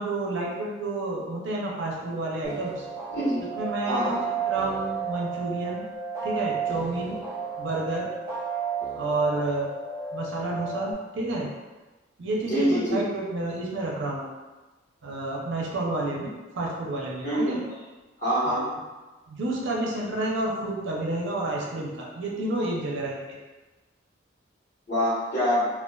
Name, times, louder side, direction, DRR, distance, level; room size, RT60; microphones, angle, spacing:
voice 1, 0.0-2.8 3.6-4.1 4.5-5.8 6.2-7.2 7.6-8.1 8.9-9.7 10.1-11.5 12.2-14.3 15.0-17.6 18.5-18.8 19.3-23.4, right 2 dB, 65° right, -3 dB, 0.5 m, -30 dB
sound 1, 2.4-10.9, right 6 dB, 15° right, 0.7 m, -33 dB
voice 2, 3.1-3.4 3.8-4.2 12.4-13.0 17.2-17.6 18.2-18.6 24.9-25.7, equal, 40° left, -14 dB, 1.1 m, -25 dB
2.4 x 2.3 x 2.2 m, 1.2 s
head